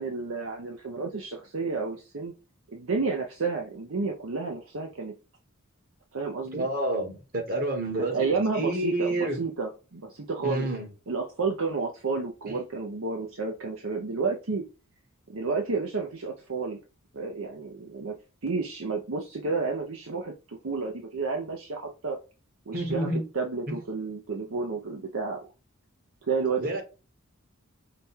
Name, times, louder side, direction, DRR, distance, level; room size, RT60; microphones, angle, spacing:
voice 1, 0.0-2.3 2.7-5.1 6.1-6.7 8.0-10.7 11.1-14.6 15.3-16.8 17.1-18.1 18.4-22.2 22.7-23.1 23.3-25.4 26.3-26.8, right 4 dB, 65° right, 2 dB, 0.7 m, -31 dB
voice 2, 6.5-9.4 10.4-10.9 12.5-12.6 22.7-23.2 23.7-23.8 26.6-26.8, right 1 dB, 45° right, 2 dB, 1.6 m, -29 dB
5.0 x 2.3 x 4.3 m, 0.32 s
head